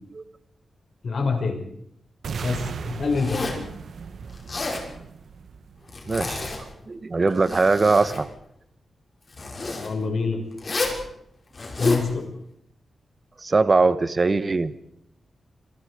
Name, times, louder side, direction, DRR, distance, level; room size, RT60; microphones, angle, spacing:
voice 1, 1.0-1.6 2.4-3.6 9.8-10.4 11.7-12.3, left 4 dB, 55° left, 3 dB, 6.3 m, -26 dB
sound 1, 2.2-6.3, right 5 dB, 70° right, 1.5 m, -36 dB
Zipper (clothing), 3.1-3.7 4.3-4.9 5.9-6.6 7.2-8.2 9.3-9.9 10.6-11.0 11.5-12.1, left 3 dB, 35° left, 6.3 m, -29 dB
voice 2, 6.1-8.3 13.4-14.7, right 3 dB, 30° right, 13 dB, 1.2 m, -21 dB
27.5 x 27.0 x 5.1 m, 0.73 s
wide cardioid pair, 145°, 0 cm